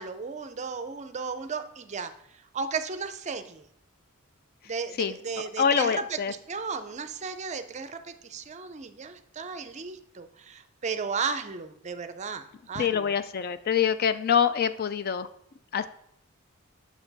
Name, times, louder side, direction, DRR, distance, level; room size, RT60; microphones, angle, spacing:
voice 1, 0.0-2.1 2.5-3.6 4.7-13.1, right 5 dB, 30° right, 10 dB, 0.5 m, -35 dB
voice 2, 5.6-6.3 12.8-15.3 15.7-15.9, left 7 dB, 45° left, 13 dB, 0.3 m, -25 dB
8.1 x 6.0 x 4.0 m, 0.73 s
head